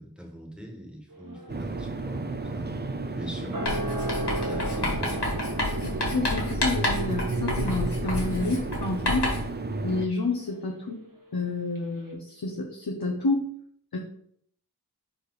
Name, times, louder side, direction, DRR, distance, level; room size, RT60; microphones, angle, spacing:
voice 1, 0.0-2.8 3.2-3.9 4.3-5.3, equal, ahead, 1 dB, 1.6 m, -42 dB
sound 1, 1.1-11.5 11.8-11.9, right 1 dB, 55° right, 1.5 m, -38 dB
sound 2, 1.5-10.1, right 3 dB, 25° right, 0.5 m, -32 dB
Writing, 3.7-9.5, left 2 dB, 80° left, 1.9 m, -30 dB
voice 2, 5.7-9.3 9.8-11.0 11.3-13.5 13.9-14.0, left 2 dB, 65° left, 0 dB, 1.0 m, -29 dB
4.9 x 4.4 x 4.9 m, 0.66 s
wide cardioid pair, 60°, 39 cm